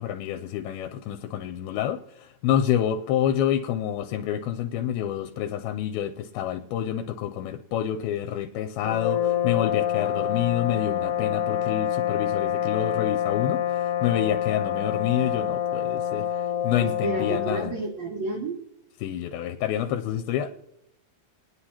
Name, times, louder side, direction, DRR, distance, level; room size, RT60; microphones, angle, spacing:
voice 1, 0.0-16.3 16.6-17.7 19.0-20.6, left 10 dB, 85° left, 7 dB, 2.4 m, -28 dB
sound 1, 8.8-17.8, left 10 dB, 70° left, 2.1 m, -27 dB
voice 2, 16.8-18.6, right 2 dB, 80° right, 2 dB, 1.5 m, -30 dB
21.5 x 9.7 x 2.9 m, 0.80 s
omnidirectional pair, 4.4 m